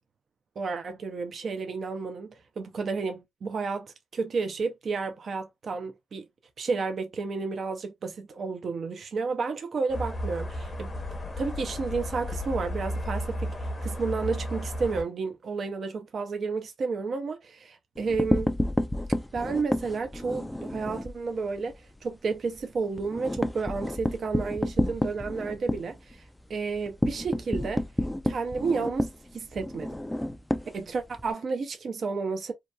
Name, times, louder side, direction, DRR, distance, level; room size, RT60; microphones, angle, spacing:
voice 1, 0.6-6.2 6.6-10.9 11.4-18.5 19.3-21.7 22.0-26.2 26.5-27.8 28.2-29.9 30.7-32.5, right 4 dB, 55° right, 0.5 m, -31 dB
sound 1, 9.9-15.0, equal, 30° left, 0.7 m, -33 dB
sound 2, 18.0-21.2 21.5-21.7 22.0-22.1 22.5-31.3, left 1 dB, 10° left, 0.4 m, -30 dB
2.8 x 2.1 x 2.2 m
cardioid pair, 75°, 0 cm